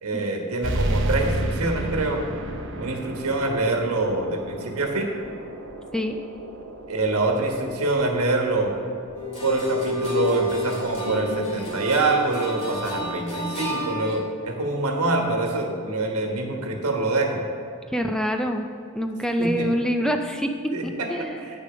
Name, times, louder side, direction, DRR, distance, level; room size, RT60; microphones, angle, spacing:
voice 1, 0.0-2.2 2.8-5.1 6.9-8.8 9.4-17.4 19.4-19.7 20.7-21.5, right 2 dB, 70° right, 2 dB, 1.3 m, -25 dB
sound 1, 0.6-15.7, right 1 dB, 55° right, 0.8 m, -34 dB
sound 2, 9.1-14.2, left 2 dB, 30° left, 2.3 m, -30 dB
voice 2, 17.9-18.7 18.9-21.4, equal, 5° left, 4 dB, 0.3 m, -26 dB
9.2 x 6.9 x 4.9 m, 2.4 s
head